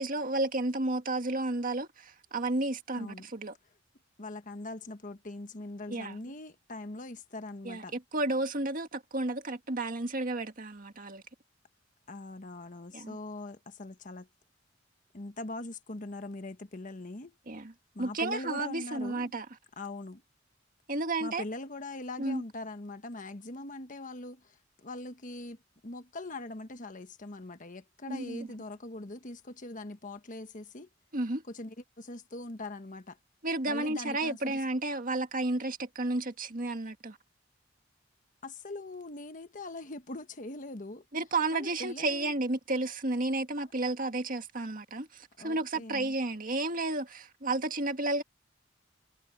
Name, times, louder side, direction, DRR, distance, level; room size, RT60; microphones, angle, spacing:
voice 1, 0.0-3.5 5.9-6.2 7.7-11.2 12.9-13.2 17.5-17.7 18.0-19.5 20.9-21.4 22.2-22.4 28.1-28.5 31.1-31.4 33.4-37.2 41.1-48.2, right 2 dB, 45° right, 1.9 m, -32 dB
voice 2, 3.0-3.3 4.2-7.9 12.1-14.3 15.1-17.4 17.9-19.3 19.8-20.2 21.2-25.6 25.8-30.9 31.5-33.2 33.7-34.6 38.4-41.0 41.5-42.3 45.4-46.1, left 2 dB, 45° left, 1.4 m, -42 dB
head